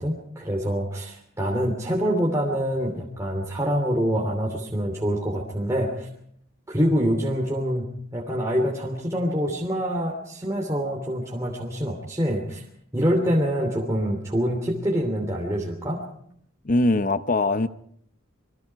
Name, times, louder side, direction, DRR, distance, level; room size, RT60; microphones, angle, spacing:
voice 1, 0.0-6.1 6.7-12.6 12.9-16.0, equal, 15° right, 3.0 m, -25 dB
voice 2, 16.6-17.7, left 2 dB, 40° left, 0.8 m, -21 dB
27.0 x 23.0 x 4.7 m
head